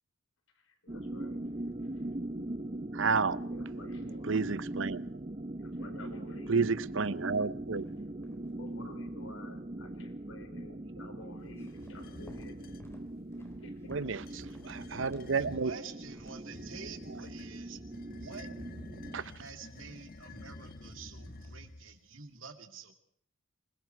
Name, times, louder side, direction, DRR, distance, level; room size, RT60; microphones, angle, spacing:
voice 1, 0.5-1.5 1.8-2.1 3.4-4.6 5.6-6.6 8.5-12.6 13.6-13.9, left 2 dB, 85° left, 4.7 m, -52 dB
sound 1, 0.9-19.2, right 1 dB, 30° right, 0.8 m, -41 dB
voice 2, 2.9-3.4 4.2-5.1 6.5-7.9 8.3-8.4 13.9-15.7 19.1-19.3, right 4 dB, 70° right, 0.8 m, -31 dB
sound 2, 6.8-7.5 7.8-8.9 11.5-16.9 20.3-20.8 21.2-21.6, equal, 15° left, 4.0 m, -56 dB
voice 3, 10.7-11.0 15.4-18.5 19.4-22.9, right 5 dB, 90° right, 2.8 m, -48 dB
sound 3, 11.6-12.9 14.1-15.7 16.5-22.0, left 2 dB, 50° left, 1.5 m, -50 dB
26.5 x 21.5 x 4.6 m
head